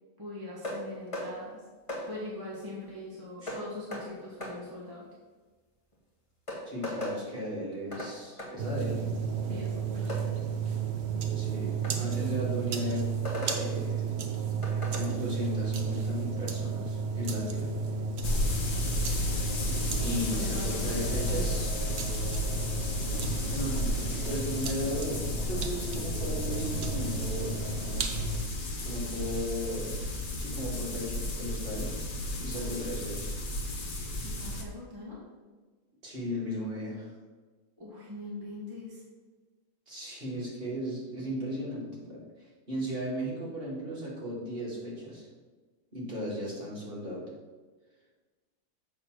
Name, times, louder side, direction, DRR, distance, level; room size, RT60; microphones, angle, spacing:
voice 1, 0.2-1.6 2.1-5.0 9.4-10.3 18.2-19.5 20.0-21.6 28.0-28.3 32.5-32.8 34.2-35.2 37.8-39.0, left 2 dB, 15° right, -6 dB, 1.3 m, -42 dB
sound 1, 0.6-0.8 1.1-1.3 1.9-2.0 3.5-3.6 3.9-4.0 4.4-4.5 5.9-6.0 6.5-7.2 7.9-8.1 8.4-8.5 10.1-10.2 11.8-12.0 13.2-13.6 14.6-15.1, left 1 dB, 20° left, 1.4 m, -36 dB
voice 2, 6.7-9.0 11.3-13.1 13.4-14.2 14.9-17.7 20.0-21.8 23.1-27.6 28.8-30.0 30.4-31.9 32.4-33.5 36.0-37.1 39.9-45.3 45.9-47.3, equal, 30° right, -6 dB, 2.2 m, -36 dB
sound 2, 8.6-28.4, right 5 dB, 65° right, 0.6 m, -33 dB
sound 3, 18.2-34.6, left 1 dB, 55° left, 0.5 m, -33 dB
7.6 x 4.0 x 6.1 m, 1.3 s
omnidirectional pair, 2.1 m